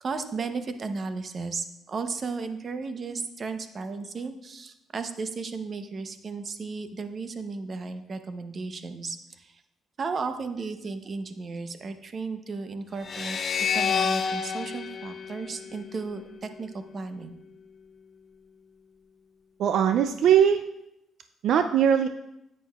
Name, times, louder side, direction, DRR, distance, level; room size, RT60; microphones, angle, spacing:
voice 1, 0.0-9.6 10.0-17.4, right 4 dB, 45° right, 9 dB, 0.7 m, -34 dB
sound 1, 13.0-16.3, left 6 dB, 45° left, 0.4 m, -29 dB
voice 2, 19.6-20.6 21.4-22.1, right 8 dB, 75° right, 8 dB, 0.3 m, -20 dB
9.7 x 8.5 x 2.4 m, 0.84 s
cardioid pair, 90°, 0 cm